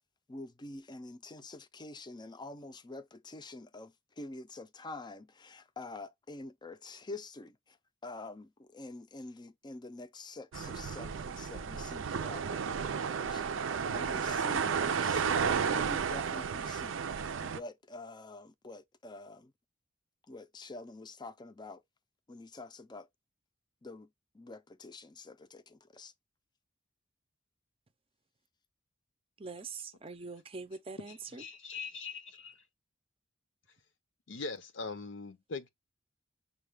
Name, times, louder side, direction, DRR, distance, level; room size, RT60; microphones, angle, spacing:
voice 1, 0.3-7.8 8.0-17.0 17.4-19.5 20.3-21.8 22.3-23.1 23.8-24.1 24.3-26.1, left 2 dB, 25° left, 0.5 m, -47 dB
sound 1, 10.5-17.6, right 6 dB, 85° right, 0.5 m, -32 dB
voice 2, 29.4-31.4, right 4 dB, 30° right, 0.5 m, -43 dB
voice 3, 31.4-32.6 34.3-35.7, left 4 dB, 70° left, 0.7 m, -41 dB
6.3 x 2.3 x 3.3 m
head